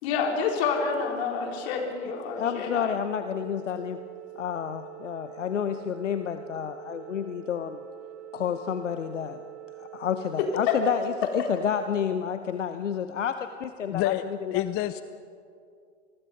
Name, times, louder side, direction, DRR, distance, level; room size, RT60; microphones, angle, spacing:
voice 1, 0.0-3.0 10.4-10.7, left 6 dB, 60° left, 2 dB, 4.1 m, -28 dB
Organ, 0.9-11.9, right 15 dB, 40° right, 6.6 m, -45 dB
voice 2, 2.4-4.0 4.4-7.8 8.3-9.4 9.8-14.6, left 8 dB, 85° left, 9 dB, 0.9 m, -30 dB
voice 3, 13.9-15.0, left 14 dB, 40° left, 13 dB, 0.7 m, -28 dB
27.0 x 20.5 x 5.2 m, 2.4 s
hypercardioid pair, 85°, 36 cm